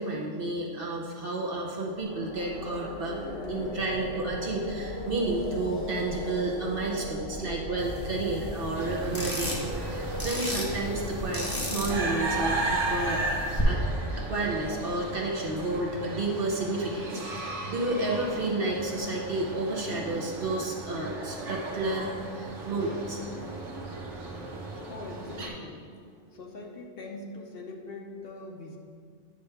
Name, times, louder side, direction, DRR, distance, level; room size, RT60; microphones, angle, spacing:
voice 1, 0.0-3.2 3.5-13.2 13.6-13.8 14.1-22.1 22.3-23.2, right 2 dB, 55° right, -2 dB, 1.0 m, -31 dB
sound 1, 1.9-16.0, left 1 dB, 85° left, 1.7 m, -39 dB
sound 2, 7.8-13.6, equal, 10° left, 1.0 m, -35 dB
sound 3, 8.7-25.5, right 2 dB, 75° right, 1.4 m, -36 dB
voice 2, 24.9-25.9 26.3-28.8, left 2 dB, 55° left, 2 dB, 0.9 m, -42 dB
9.3 x 3.4 x 5.7 m, 2.1 s
omnidirectional pair, 1.3 m